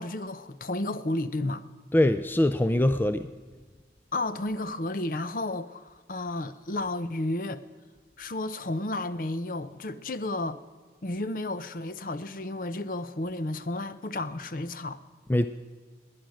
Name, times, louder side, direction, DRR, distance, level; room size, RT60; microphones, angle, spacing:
voice 1, 0.0-1.6 4.1-7.6 8.2-10.6 11.0-15.0, left 2 dB, 50° left, 0.7 m, -32 dB
voice 2, 1.9-3.3 15.3-15.5, left 1 dB, 10° left, 0.3 m, -23 dB
19.5 x 10.0 x 6.3 m
head